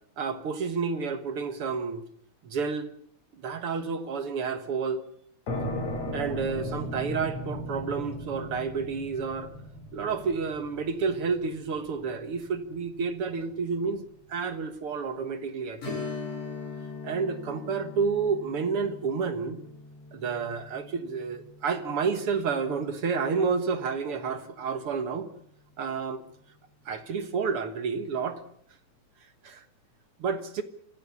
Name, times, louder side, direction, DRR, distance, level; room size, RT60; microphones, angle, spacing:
voice 1, 0.2-2.0 2.4-2.9 3.4-5.0 6.1-9.5 9.9-16.0 17.0-19.6 20.1-25.3 25.8-26.2 26.9-28.4 29.4-29.6 30.2-30.6, right 5 dB, 55° right, 2.0 m, -30 dB
sound 1, 5.5-12.8, left 1 dB, 55° left, 5.2 m, -36 dB
Strum, 15.8-25.0 25.3-25.4 28.0-28.1 28.6-28.7, left 4 dB, 70° left, 7.9 m, -42 dB
25.5 x 16.5 x 8.4 m
omnidirectional pair, 3.6 m